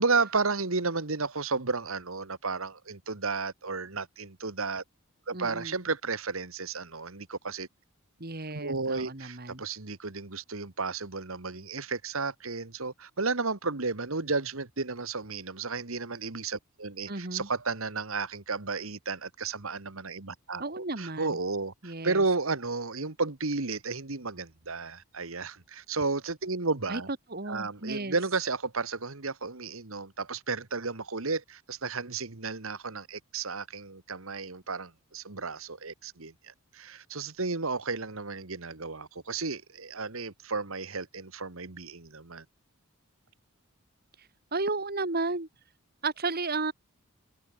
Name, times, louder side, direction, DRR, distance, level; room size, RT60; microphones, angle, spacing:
voice 1, 0.0-4.8 5.3-7.7 8.5-27.1 27.5-42.4, right 4 dB, 70° right, 1.7 m, -33 dB
voice 2, 5.3-5.8 8.2-9.6 17.1-17.5 20.6-21.4 21.8-22.2 26.9-27.0 27.3-28.2 44.2-45.5 46.0-46.7, right 3 dB, 45° right, 2.2 m, -33 dB
head